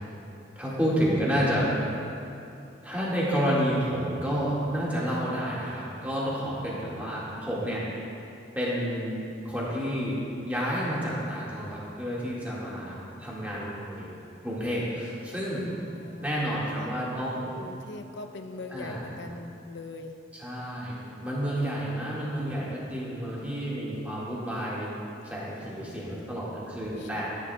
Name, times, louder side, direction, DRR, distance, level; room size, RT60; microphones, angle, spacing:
voice 1, 0.6-1.7 2.8-7.8 8.6-10.2 10.5-14.1 14.4-15.7 16.2-17.6 18.7-19.0 20.4-24.9 25.2-27.3, equal, 10° right, -7 dB, 1.8 m, -30 dB
voice 2, 12.8-13.3 15.6-16.9 17.6-20.2 25.5-26.3 27.0-27.3, left 2 dB, 75° left, 6 dB, 0.6 m, -43 dB
14.0 x 9.7 x 2.3 m, 2.7 s
head